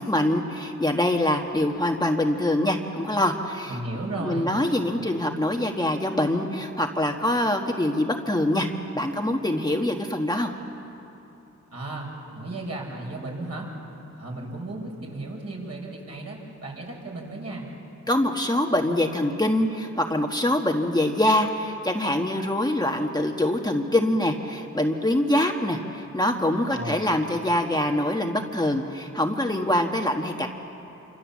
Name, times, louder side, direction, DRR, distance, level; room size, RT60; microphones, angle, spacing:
voice 1, 0.0-3.8 4.2-8.7 8.9-10.5 18.1-30.5, left 1 dB, 15° left, 2 dB, 1.4 m, -24 dB
voice 2, 3.7-4.5 11.7-13.7 14.1-17.7 26.7-27.0, right 2 dB, 55° right, -1 dB, 6.1 m, -34 dB
27.5 x 26.0 x 7.4 m, 2.8 s
wide cardioid pair, 105°, 30 cm